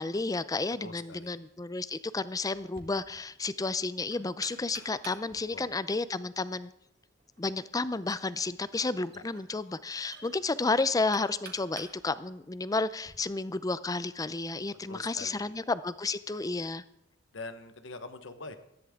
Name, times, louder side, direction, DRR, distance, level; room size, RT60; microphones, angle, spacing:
voice 1, 0.0-6.7 7.4-16.8, left 3 dB, 20° left, 15 dB, 0.5 m, -32 dB
voice 2, 0.8-1.4 5.5-5.7 9.1-9.2 14.9-15.6 17.3-18.6, left 3 dB, 75° left, 9 dB, 1.2 m, -44 dB
Knock, 2.5-13.1, right 5 dB, 55° right, 1.9 m, -53 dB
18.0 x 14.0 x 3.7 m, 0.78 s
head